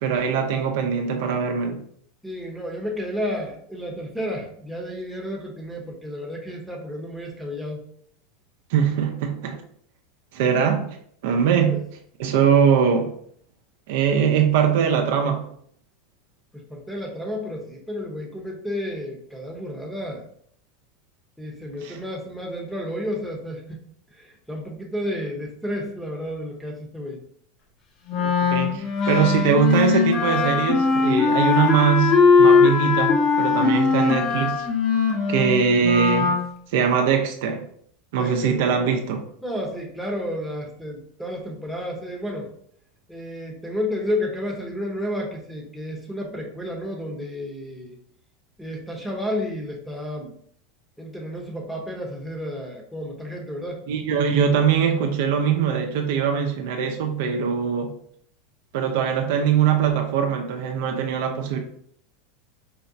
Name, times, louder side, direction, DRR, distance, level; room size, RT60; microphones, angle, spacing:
voice 1, 0.0-1.8 8.7-9.6 10.3-10.9 11.2-11.8 12.2-13.1 13.9-15.5 21.8-22.0 28.1-34.7 35.3-36.4 36.7-37.6 38.1-39.3 53.9-57.9 58.7-61.6, right 7 dB, 70° right, 0.5 m, -22 dB
voice 2, 2.2-7.8 11.7-11.8 16.5-20.2 21.4-23.8 24.1-27.2 38.2-38.6 39.4-42.5 43.1-48.0 48.6-50.3 51.0-53.8, left 1 dB, ahead, 0.8 m, -31 dB
Wind instrument woodwind instrument, 28.1-36.4, left 5 dB, 40° left, 0.8 m, -20 dB
4.8 x 2.1 x 2.6 m
supercardioid pair, 120°, 0 cm